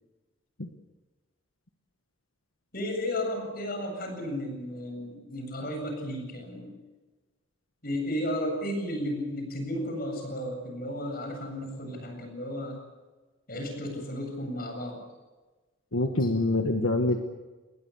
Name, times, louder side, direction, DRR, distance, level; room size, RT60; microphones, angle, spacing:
voice 1, 2.7-6.8 7.8-12.8 13.5-15.0 16.2-16.3, left 1 dB, 45° left, 5 dB, 7.9 m, -33 dB
voice 2, 15.9-17.2, left 2 dB, 80° left, 4 dB, 1.7 m, -25 dB
28.0 x 21.5 x 7.2 m, 1.2 s
head